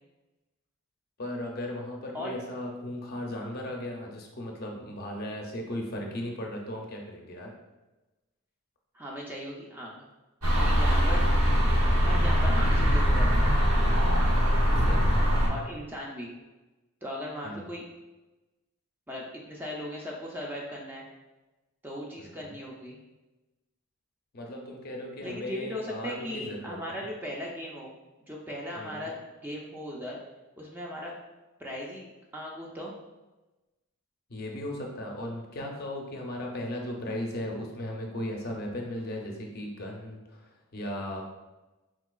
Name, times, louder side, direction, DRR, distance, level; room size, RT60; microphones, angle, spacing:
voice 1, 1.2-7.6 14.8-15.4 17.4-17.7 22.2-22.6 24.3-27.1 28.7-29.1 34.3-41.2, left 1 dB, 45° left, 1 dB, 0.5 m, -37 dB
voice 2, 8.9-10.0 10.5-11.6 12.0-13.5 15.5-16.3 17.0-17.8 19.1-21.0 21.8-23.0 25.2-27.9 28.3-29.1 29.4-30.2 30.6-31.1 31.6-32.9, left 1 dB, 10° right, -3 dB, 0.3 m, -38 dB
sound 1, 10.4-15.5, equal, 75° right, 0.8 m, -22 dB
3.7 x 2.7 x 2.3 m, 1.1 s
head